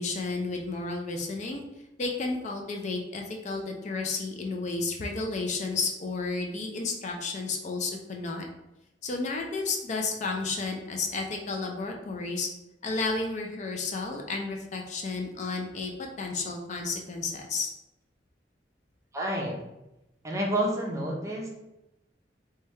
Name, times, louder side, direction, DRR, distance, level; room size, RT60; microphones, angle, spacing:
voice 1, 0.0-1.6 2.0-8.5 9.0-12.5 12.8-17.7, left 3 dB, 40° left, 2 dB, 0.4 m, -32 dB
voice 2, 19.1-19.6 20.2-21.5, right 1 dB, 15° right, -2 dB, 0.5 m, -29 dB
3.1 x 2.3 x 3.1 m, 0.95 s
head